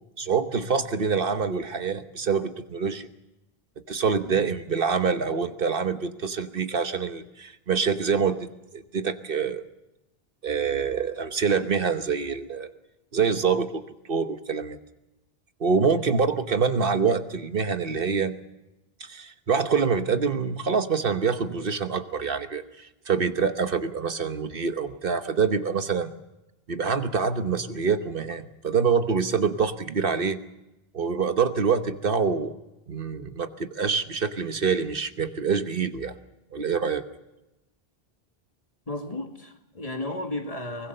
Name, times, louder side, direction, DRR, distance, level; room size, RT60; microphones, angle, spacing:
voice 1, 0.2-3.1 3.9-9.6 10.4-12.7 13.1-13.8 14.1-14.8 15.6-18.3 19.0-26.1 26.7-30.4 30.9-32.5 32.9-36.1 36.5-37.0, right 5 dB, 60° right, 9 dB, 1.3 m, -26 dB
voice 2, 38.9-40.9, left 2 dB, 35° left, 4 dB, 2.1 m, -34 dB
23.5 x 20.0 x 6.7 m, 0.95 s
omnidirectional pair, 1.0 m